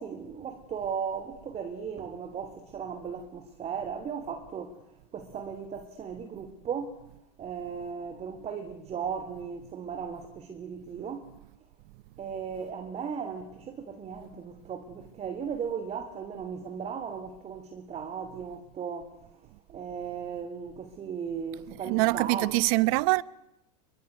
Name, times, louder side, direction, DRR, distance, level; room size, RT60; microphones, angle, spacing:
voice 1, 0.0-4.8 5.1-7.0 7.4-11.3 12.2-19.2 19.7-22.5, right 6 dB, 30° right, 3.2 m, -36 dB
voice 2, 21.8-23.2, right 23 dB, 60° right, 1.0 m, -24 dB
27.5 x 22.5 x 9.5 m
hypercardioid pair, 105°, 21 cm